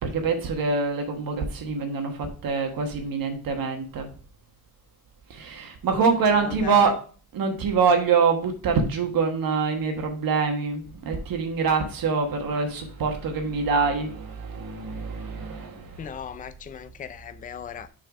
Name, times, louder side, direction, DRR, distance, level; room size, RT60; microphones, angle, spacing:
voice 1, 0.0-4.1 5.3-6.9 7.3-16.1, right 5 dB, 60° right, 1.3 m, -25 dB
voice 2, 6.4-6.9 16.0-17.9, left 8 dB, 25° left, 0.3 m, -38 dB
6.3 x 4.0 x 4.7 m
cardioid pair, 150°, 39 cm